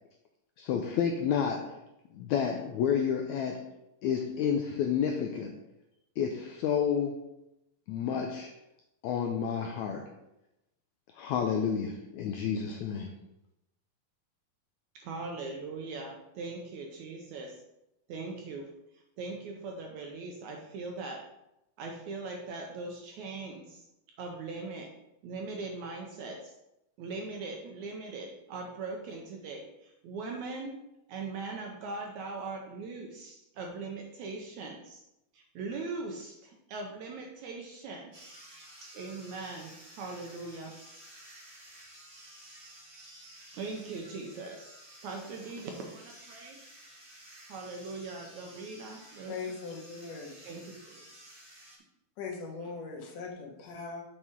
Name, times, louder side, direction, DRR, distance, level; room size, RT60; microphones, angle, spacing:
voice 1, 0.6-1.8 2.1-3.6 4.0-5.5 6.2-7.2 7.9-8.5 9.0-10.1 11.1-13.1, left 7 dB, 90° left, 3 dB, 1.6 m, -30 dB
voice 2, 15.0-17.6 18.1-18.7 19.2-21.2 21.8-23.8 24.2-24.9 25.2-26.5 27.0-30.8 31.1-35.0 35.3-38.4 38.9-40.7 43.5-44.8 45.0-46.6 47.5-49.3 50.4-50.6, right 3 dB, 75° right, 1 dB, 1.8 m, -40 dB
sound 1, 38.1-51.8, right 1 dB, 35° right, 2.1 m, -53 dB
voice 3, 49.3-50.3 52.2-54.0, left 4 dB, 70° left, -1 dB, 2.6 m, -40 dB
7.3 x 4.8 x 4.4 m, 0.89 s
omnidirectional pair, 4.0 m